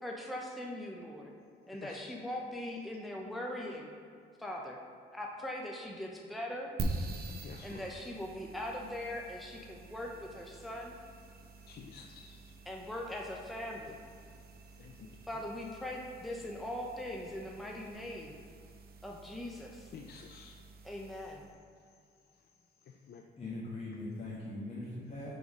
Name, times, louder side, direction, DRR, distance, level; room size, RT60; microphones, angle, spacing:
voice 1, 0.0-1.3 1.7-3.9 4.4-4.8 5.1-6.7 7.6-10.9 12.7-14.0 15.3-18.4 19.0-19.9 20.8-21.4, left 1 dB, ahead, -1 dB, 0.6 m, -41 dB
sound 1, 6.8-21.5, right 2 dB, 50° right, 0.7 m, -45 dB
voice 2, 7.4-7.8 11.7-12.4 14.8-15.1 19.9-20.5 23.1-23.2, left 6 dB, 55° left, 2 dB, 0.4 m, -50 dB
voice 3, 23.4-25.4, left 2 dB, 30° left, -8 dB, 1.3 m, -41 dB
5.5 x 3.8 x 4.8 m, 2.2 s
cardioid pair, 90°, 20 cm